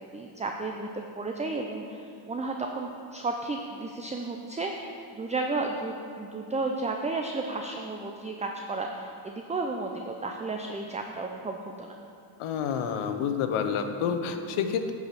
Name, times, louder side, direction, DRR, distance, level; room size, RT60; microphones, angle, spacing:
voice 1, 0.1-12.0, right 3 dB, 15° right, 2 dB, 0.5 m, -33 dB
voice 2, 12.4-14.9, left 7 dB, 85° left, 7 dB, 0.9 m, -29 dB
10.0 x 4.8 x 6.7 m, 2.4 s
cardioid pair, 90°, 48 cm